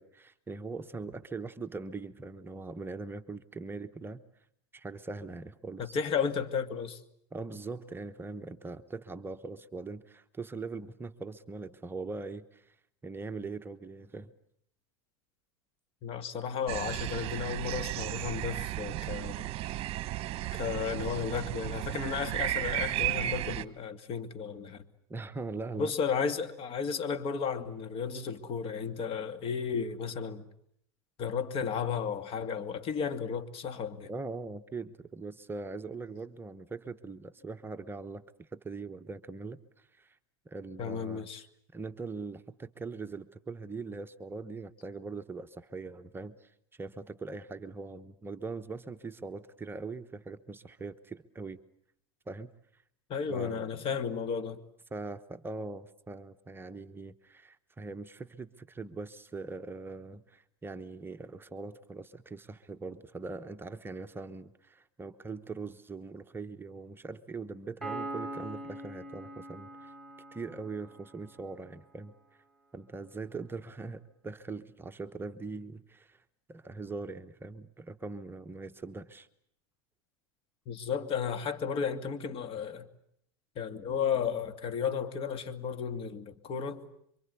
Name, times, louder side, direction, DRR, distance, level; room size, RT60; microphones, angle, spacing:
voice 1, 0.0-4.2 4.7-6.0 7.3-12.8 13.0-14.3 25.1-25.9 34.1-40.2 40.4-41.3 41.7-51.6 52.3-52.8 53.3-53.8 54.9-69.9 70.3-72.1 72.7-76.2 76.5-79.3, right 3 dB, 15° right, 1.1 m, -41 dB
voice 2, 5.8-7.0 16.0-19.8 20.5-24.8 25.8-30.5 31.2-34.1 40.8-41.4 53.1-54.6 80.7-82.9 83.6-86.8, left 6 dB, 45° left, 2.5 m, -33 dB
sound 1, 16.7-23.6, right 15 dB, 45° right, 1.2 m, -34 dB
Piano, 67.8-71.4, right 2 dB, 5° left, 6.9 m, -42 dB
27.0 x 24.5 x 8.3 m
supercardioid pair, 105°, 13 cm